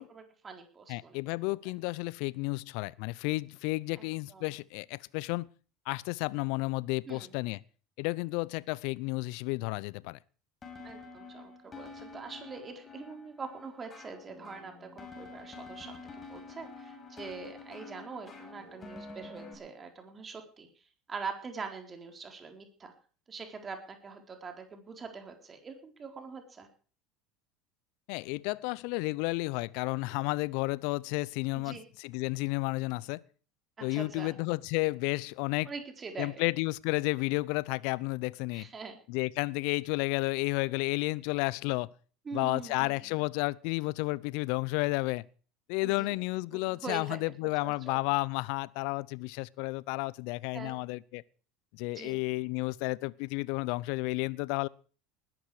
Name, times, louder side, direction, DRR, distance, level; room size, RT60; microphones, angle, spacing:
voice 1, 0.0-1.2 4.0-4.5 7.1-7.3 10.8-15.9 16.3-22.9 23.3-26.7 31.5-31.8 33.8-34.3 35.7-36.3 38.5-39.0 42.3-43.0 45.8-46.1 46.5-47.2 47.6-48.0 50.5-50.8 51.9-52.2, right 4 dB, 30° right, 4.0 m, -43 dB
voice 2, 0.9-5.5 5.9-7.6 8.0-10.2 28.1-33.2 33.8-35.7 36.2-38.7 39.1-41.9 42.3-45.3 45.7-51.2 51.7-54.7, left 24 dB, 65° left, 0.6 m, -32 dB
sound 1, 10.6-19.5, left 3 dB, 30° left, 6.0 m, -48 dB
19.5 x 12.5 x 4.9 m
hypercardioid pair, 80°, 0 cm